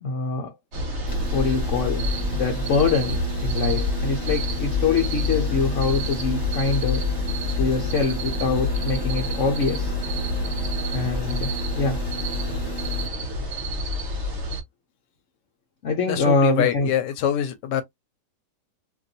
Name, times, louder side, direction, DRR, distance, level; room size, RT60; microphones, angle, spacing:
voice 1, 0.0-0.5 1.3-7.2 7.6-10.0 10.9-12.0 15.8-16.9, left 4 dB, 60° left, 0.8 m, -24 dB
sound 1, 0.7-14.6, left 2 dB, 50° right, 1.0 m, -27 dB
sound 2, 1.1-13.1, equal, 30° left, 0.9 m, -34 dB
voice 2, 16.1-17.8, left 10 dB, 80° left, 1.2 m, -24 dB
3.0 x 2.6 x 2.7 m
omnidirectional pair, 1.9 m